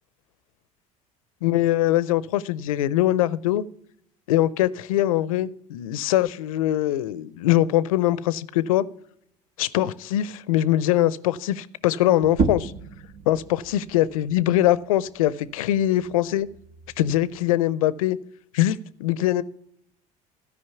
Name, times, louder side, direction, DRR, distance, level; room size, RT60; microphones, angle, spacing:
voice 1, 1.4-3.6 4.3-8.8 9.6-12.7 13.3-16.5 17.0-18.2 18.5-19.4, left 13 dB, 90° left, 0.5 m, -22 dB
sound 1, 12.2-17.4, right 4 dB, 55° right, 1.0 m, -33 dB
13.0 x 5.1 x 7.0 m
hypercardioid pair, 80°, 17 cm